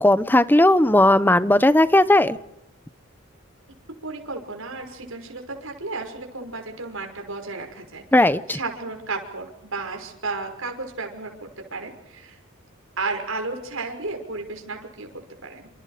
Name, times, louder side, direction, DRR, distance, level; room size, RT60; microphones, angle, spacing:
voice 1, 0.0-2.4 8.1-8.6, left 1 dB, 10° left, 14 dB, 0.9 m, -16 dB
voice 2, 4.0-12.4 13.0-15.7, right 3 dB, 75° right, 4 dB, 5.9 m, -33 dB
28.5 x 27.5 x 5.1 m, 0.83 s
head